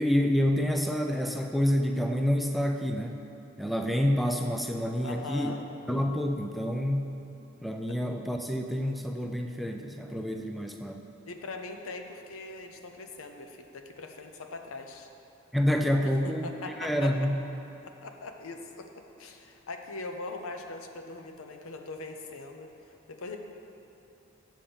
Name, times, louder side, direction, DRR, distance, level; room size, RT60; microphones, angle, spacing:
voice 1, 0.0-3.2 3.6-5.5 5.9-7.1 7.6-11.0 15.5-17.4, equal, ahead, 3 dB, 0.3 m, -28 dB
voice 2, 5.0-5.6 7.9-8.0 11.2-15.1 16.0-17.1 17.8-22.7 23.1-23.4, left 3 dB, 75° left, 5 dB, 0.7 m, -41 dB
7.4 x 5.4 x 6.8 m, 2.9 s
head